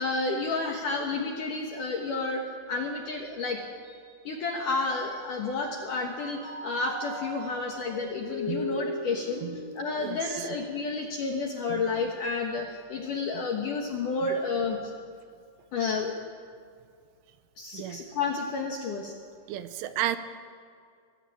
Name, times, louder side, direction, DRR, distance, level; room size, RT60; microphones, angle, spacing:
voice 1, 0.0-3.6 4.2-9.4 9.7-14.9 15.7-16.2 17.6-19.1, left 3 dB, 65° left, 2 dB, 2.1 m, -31 dB
Mallet percussion, 3.8-5.2 5.6-11.0, left 1 dB, 40° right, 7.0 m, -40 dB
voice 2, 10.0-10.5 11.7-11.8 17.7-18.0 19.5-20.2, right 12 dB, 85° right, 11 dB, 3.3 m, -33 dB
23.5 x 16.5 x 8.7 m, 2.2 s
omnidirectional pair, 5.7 m